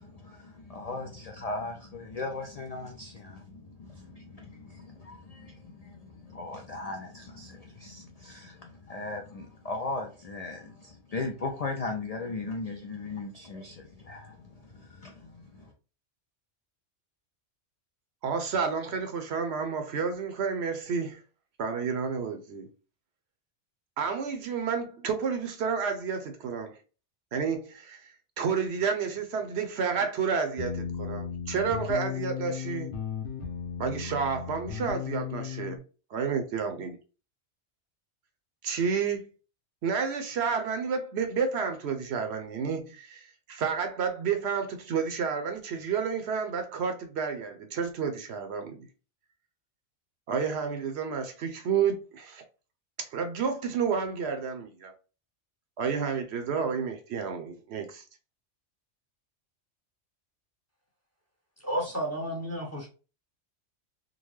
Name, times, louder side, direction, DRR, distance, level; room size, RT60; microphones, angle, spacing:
voice 1, 0.0-15.7, left 3 dB, 55° left, 0.4 m, -38 dB
voice 2, 18.2-21.2 21.6-22.7 24.0-26.8 27.3-32.9 33.8-35.8 36.1-37.0 38.6-39.2 39.8-48.9 50.3-52.4 53.0-54.9 55.8-58.0, right 6 dB, 65° right, 0.9 m, -30 dB
sound 1, 30.6-35.8, left 8 dB, 75° left, 1.0 m, -35 dB
voice 3, 61.6-62.9, equal, 15° left, 0.7 m, -32 dB
3.8 x 2.1 x 3.1 m
omnidirectional pair, 1.2 m